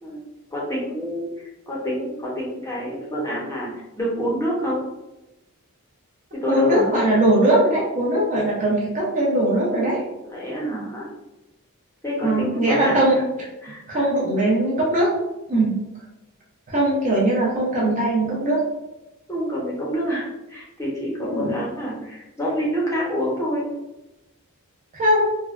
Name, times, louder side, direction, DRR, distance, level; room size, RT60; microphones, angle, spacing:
voice 1, 0.5-4.8 6.3-7.1 10.2-11.1 12.0-13.2 13.6-14.1 19.3-23.6, equal, 15° left, -5 dB, 0.7 m, -27 dB
voice 2, 6.5-10.0 12.2-13.2 13.9-15.1 15.5-15.7 16.7-18.6 21.2-21.5 24.9-25.3, right 1 dB, 35° right, -5 dB, 0.6 m, -20 dB
3.4 x 2.2 x 2.4 m, 0.98 s
head